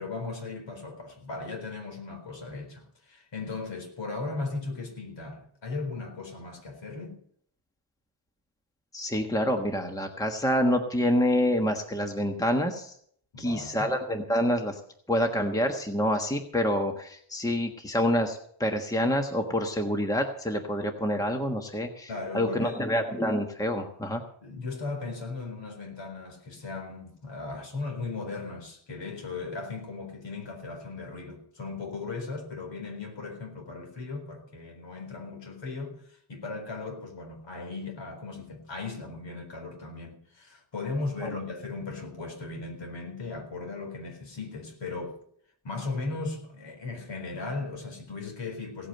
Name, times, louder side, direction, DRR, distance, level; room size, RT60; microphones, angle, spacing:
voice 1, 0.0-7.2 13.3-13.9 22.1-22.8 24.4-36.0 36.3-45.2 45.6-48.9, left 3 dB, 60° left, 4.3 m, -37 dB
voice 2, 8.9-12.9 13.4-14.8 15.1-22.1 22.3-24.2 41.2-41.3, equal, 5° left, 1.4 m, -27 dB
17.0 x 8.7 x 6.6 m
wide cardioid pair, 140°, 50 cm